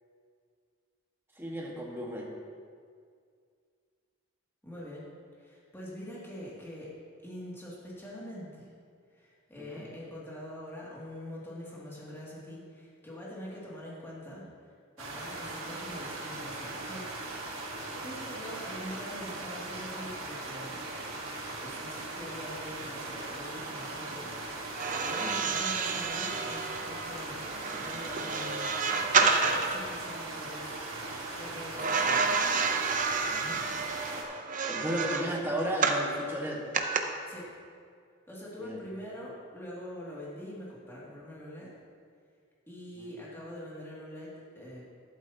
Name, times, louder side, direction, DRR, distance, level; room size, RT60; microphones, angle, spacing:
voice 1, 1.4-2.3 9.6-9.8 25.2-25.4 33.3-33.6 34.7-36.6 38.6-38.8 43.0-43.1, equal, 10° right, -3 dB, 1.6 m, -34 dB
voice 2, 4.6-5.1 5.4-6.9 7.2-8.7 9.1-14.5 15.0-17.3 17.9-20.9 21.6-27.4 27.8-30.7 31.0-32.4 37.3-37.5 38.3-41.7 42.7-44.9, equal, 10° left, -7 dB, 2.4 m, -44 dB
sound 1, 15.0-34.2, right 2 dB, 90° right, 1.6 m, -39 dB
sound 2, 24.7-29.9 31.8-36.1 36.7-37.0, right 5 dB, 40° right, 0.7 m, -29 dB
12.0 x 11.5 x 2.9 m, 2.2 s
head